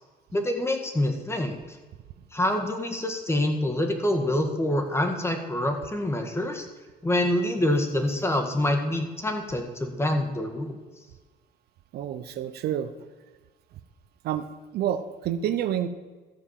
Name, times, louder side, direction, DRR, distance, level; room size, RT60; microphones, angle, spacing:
voice 1, 0.3-1.6 2.3-6.7 7.0-10.8, left 1 dB, 15° left, 5 dB, 1.7 m, -26 dB
voice 2, 11.9-12.9 14.2-14.5 14.7-15.9, right 10 dB, 70° right, 11 dB, 0.7 m, -28 dB
14.0 x 4.8 x 7.5 m, 1.3 s
cardioid pair, 110°, 17 cm